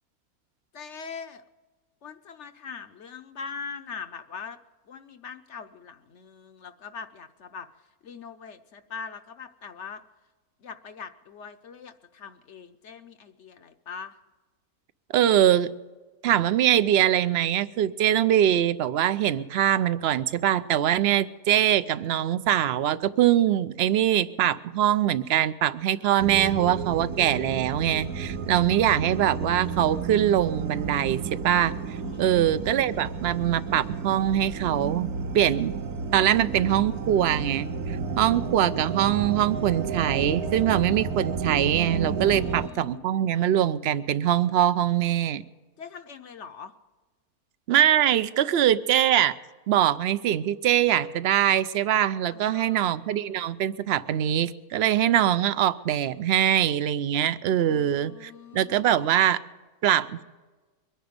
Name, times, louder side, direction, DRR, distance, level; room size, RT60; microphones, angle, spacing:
voice 1, 0.7-1.4 2.0-4.6 4.9-7.7 8.0-10.0 10.6-14.2 32.0-32.4 42.2-43.0 45.8-46.7 52.3-53.0 57.6-59.0, left 6 dB, 60° left, 9 dB, 0.9 m, -42 dB
voice 2, 15.1-15.7 16.2-31.7 32.2-35.1 35.3-35.7 36.1-45.4 47.7-49.4 49.7-59.4 59.8-60.2, right 11 dB, 60° right, 15 dB, 0.7 m, -23 dB
sound 1, 26.2-42.7, right 5 dB, 80° right, 1.5 m, -32 dB
23.0 x 10.0 x 5.1 m, 1.3 s
omnidirectional pair, 1.6 m